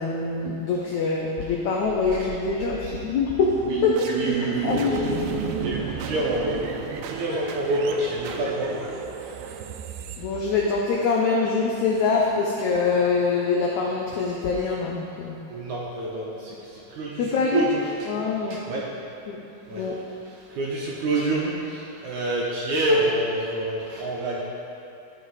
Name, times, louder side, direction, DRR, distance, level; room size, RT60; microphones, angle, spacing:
voice 1, 0.0-5.2 10.2-15.4 17.2-17.7 18.1-18.6 19.3-19.4 19.7-20.0, left 4 dB, 85° left, -2 dB, 1.6 m, -24 dB
sound 1, 1.8-11.0, right 8 dB, 90° right, 2.5 m, -33 dB
voice 2, 4.1-6.6 7.1-8.8 15.5-18.1 18.5-18.9 19.7-19.9 20.5-24.4, right 1 dB, 70° right, -4 dB, 1.9 m, -27 dB
12.5 x 6.0 x 4.1 m, 2.7 s
omnidirectional pair, 4.3 m